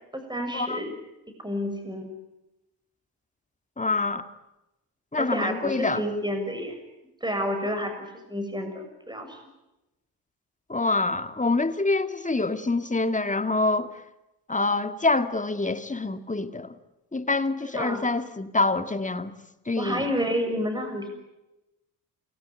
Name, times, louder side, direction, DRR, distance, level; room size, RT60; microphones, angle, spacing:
voice 1, 0.1-0.9 1.4-2.1 5.1-6.8 7.2-9.4 17.7-18.0 19.8-21.1, equal, 10° right, 6 dB, 6.9 m, -30 dB
voice 2, 3.8-4.3 5.1-6.0 10.7-13.9 14.5-16.7 17.1-19.3 19.7-20.1, left 3 dB, 15° left, 10 dB, 2.1 m, -26 dB
28.5 x 21.0 x 10.0 m, 0.97 s
figure-of-eight pair, 45°, 47 cm